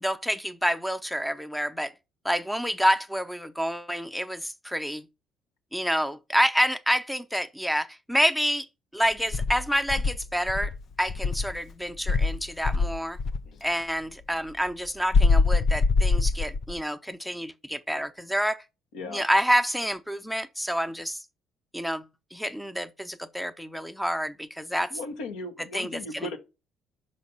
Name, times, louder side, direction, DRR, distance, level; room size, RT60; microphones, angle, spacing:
voice 1, 0.0-1.9 2.2-5.1 5.7-8.7 8.9-10.7 11.0-13.2 13.6-18.6 19.1-21.2 21.7-22.0 22.3-24.9 25.7-25.9, equal, ahead, 0.7 m, -28 dB
Insect, 9.3-11.6 12.0-13.5 15.1-16.8, left 4 dB, 50° left, 0.4 m, -23 dB
voice 2, 18.9-19.3 24.9-26.4, left 2 dB, 80° left, 1.3 m, -37 dB
5.7 x 5.2 x 5.5 m
supercardioid pair, 65°, 0 cm